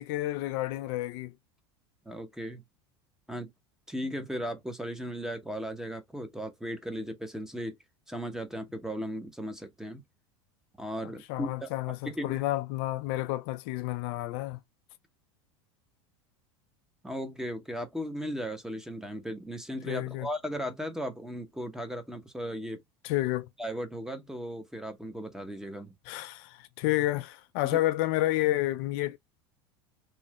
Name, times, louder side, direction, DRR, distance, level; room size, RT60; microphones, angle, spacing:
voice 1, 0.0-1.3 11.0-14.6 19.9-20.3 23.0-23.5 26.1-29.2, left 16 dB, 60° left, 0.4 m, -30 dB
voice 2, 2.1-2.6 3.3-3.5 3.9-7.7 8.1-10.0 10.8-11.7 12.0-12.4 17.0-22.8 23.6-25.9 27.6-27.8, equal, 5° right, 0.7 m, -36 dB
3.1 x 2.1 x 2.8 m
hypercardioid pair, 95°, 14 cm